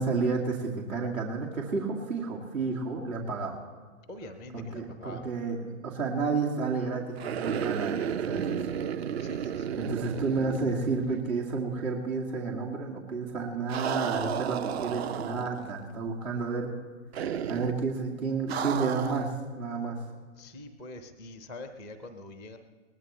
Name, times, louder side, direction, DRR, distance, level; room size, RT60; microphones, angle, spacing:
voice 1, 0.0-3.6 4.5-8.8 9.7-16.7 17.5-20.0, right 4 dB, 75° right, -1 dB, 2.5 m, -31 dB
voice 2, 4.1-5.3 9.2-9.8 20.4-22.6, left 2 dB, 10° right, 8 dB, 0.4 m, -44 dB
sound 1, 7.2-11.3 11.6-11.7 13.7-15.7 17.1-17.8 18.5-19.3, right 8 dB, 50° right, 0.7 m, -33 dB
21.5 x 19.0 x 3.2 m, 1.4 s
hypercardioid pair, 125°, 41 cm